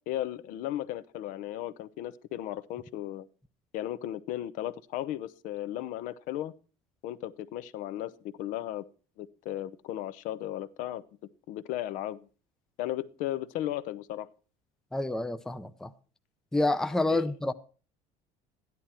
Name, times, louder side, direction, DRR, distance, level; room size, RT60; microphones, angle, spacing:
voice 1, 0.0-3.3 3.7-6.5 7.0-8.8 9.2-11.0 11.5-12.3 12.8-14.3 17.1-17.2, left 13 dB, 65° left, 0.8 m, -35 dB
voice 2, 14.9-15.9 16.5-17.5, left 2 dB, 5° left, 0.6 m, -28 dB
13.0 x 11.0 x 4.3 m
cardioid pair, 150°, 15 cm